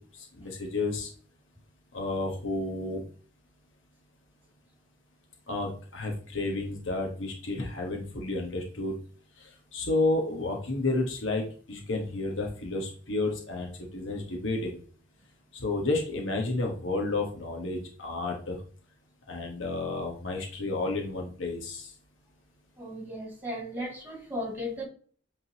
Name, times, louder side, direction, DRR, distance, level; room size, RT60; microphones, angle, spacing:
voice 1, 0.4-1.1 1.9-3.0 5.5-8.9 9.7-14.8 15.5-18.6 19.3-21.9, left 2 dB, 75° left, 0 dB, 1.4 m, -31 dB
voice 2, 22.8-24.9, equal, 10° right, -2 dB, 2.8 m, -36 dB
8.4 x 3.8 x 3.0 m, 0.43 s
head